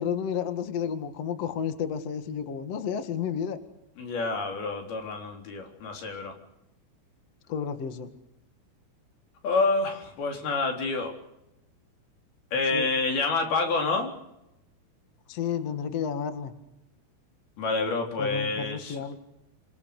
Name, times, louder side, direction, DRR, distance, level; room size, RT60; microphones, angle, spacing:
voice 1, 0.0-3.6 7.5-8.1 12.7-12.9 15.3-16.5 18.2-19.2, left 7 dB, 75° left, 8 dB, 1.4 m, -31 dB
voice 2, 4.0-6.3 9.4-11.1 12.5-14.1 17.6-19.0, left 3 dB, 50° left, 3 dB, 5.2 m, -28 dB
27.5 x 22.0 x 6.7 m, 0.87 s
omnidirectional pair, 6.0 m